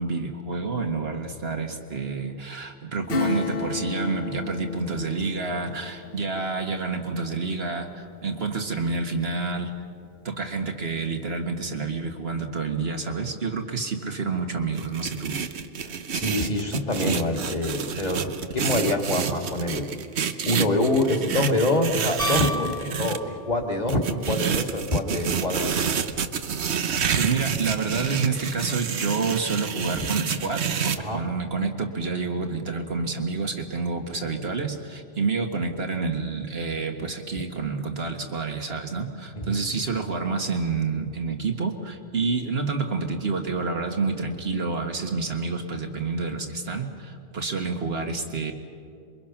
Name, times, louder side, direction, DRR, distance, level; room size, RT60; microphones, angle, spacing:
voice 1, 0.0-9.7 10.2-15.4 27.1-48.5, right 4 dB, 70° right, 4 dB, 2.1 m, -28 dB
Acoustic guitar / Strum, 3.1-9.3 9.7-9.8, left 4 dB, 65° left, 1.3 m, -34 dB
sound 1, 14.7-23.2 23.9-31.0, right 7 dB, 90° right, 1.2 m, -28 dB
voice 2, 15.8-19.9 20.2-25.9 29.9-30.1 31.0-31.2 37.4-37.5 39.3-39.6, left 2 dB, 40° left, 2 dB, 2.4 m, -26 dB
Piano, 22.2-23.8 26.1-26.2, equal, 5° left, 1.8 m, -32 dB
27.0 x 23.5 x 6.0 m, 2.5 s
omnidirectional pair, 1.1 m